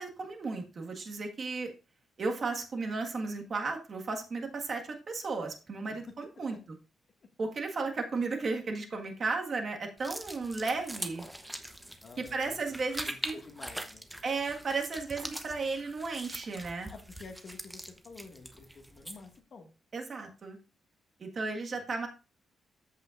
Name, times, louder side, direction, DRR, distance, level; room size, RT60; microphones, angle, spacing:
voice 1, 0.0-1.7 2.2-6.6 7.4-11.2 12.2-13.4 14.2-16.9 19.9-20.6 21.2-22.1, right 3 dB, 40° right, 3 dB, 1.6 m, -34 dB
sound 1, 10.0-19.4, right 1 dB, 5° right, 0.9 m, -43 dB
voice 2, 12.0-12.8 13.0-14.1 16.9-19.7, left 4 dB, 45° left, 3 dB, 1.8 m, -50 dB
14.0 x 5.5 x 2.5 m, 0.31 s
cardioid pair, 140°, 0 cm